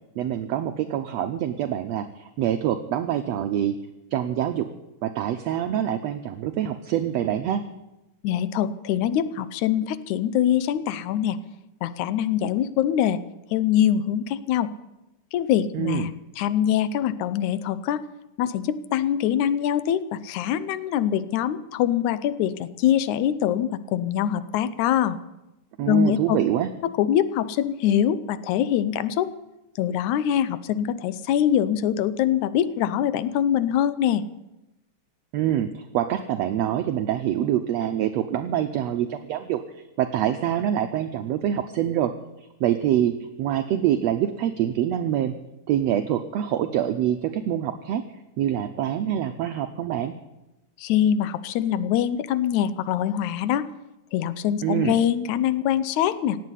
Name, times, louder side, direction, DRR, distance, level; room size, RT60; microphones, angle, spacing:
voice 1, 0.2-3.8 4.1-4.7 5.0-7.6 15.7-16.1 25.8-26.7 35.3-42.1 42.6-45.3 45.7-48.0 48.4-50.1 54.6-55.0, right 11 dB, 75° right, 8 dB, 1.6 m, -25 dB
voice 2, 8.2-11.4 11.8-13.2 13.5-14.7 15.3-16.1 16.4-18.0 18.4-25.2 25.9-26.4 27.0-29.3 29.8-34.2 50.8-53.7 54.1-56.4, left 10 dB, 75° left, 15 dB, 2.0 m, -23 dB
17.0 x 8.3 x 9.8 m, 0.96 s
omnidirectional pair, 3.7 m